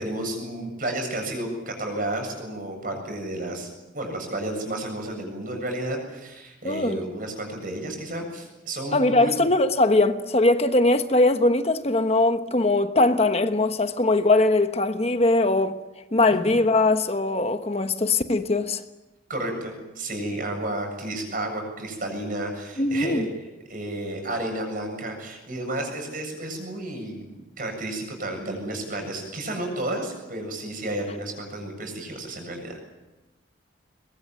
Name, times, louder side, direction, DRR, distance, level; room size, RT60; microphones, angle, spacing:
voice 1, 0.0-3.7 3.9-9.4 16.3-16.4 19.3-23.2 23.7-32.9, right 1 dB, 45° right, 7.5 m, -32 dB
voice 2, 6.6-7.0 8.9-15.8 16.1-18.8 22.8-23.3, left 2 dB, 35° left, 1.2 m, -21 dB
22.5 x 22.0 x 9.3 m
head